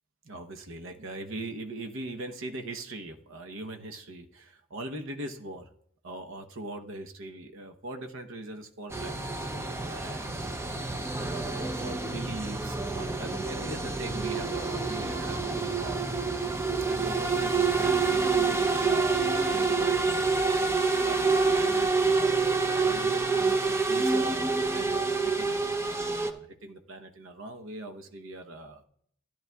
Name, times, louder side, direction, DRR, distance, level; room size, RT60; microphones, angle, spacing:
voice 1, 0.2-5.7 6.0-16.0 16.9-20.5 20.9-22.4 22.8-28.8, right 2 dB, 65° right, 5 dB, 0.8 m, -41 dB
sound 1, 8.9-26.3, right 4 dB, 10° right, 0.4 m, -27 dB
13.5 x 10.5 x 2.3 m, 0.66 s
head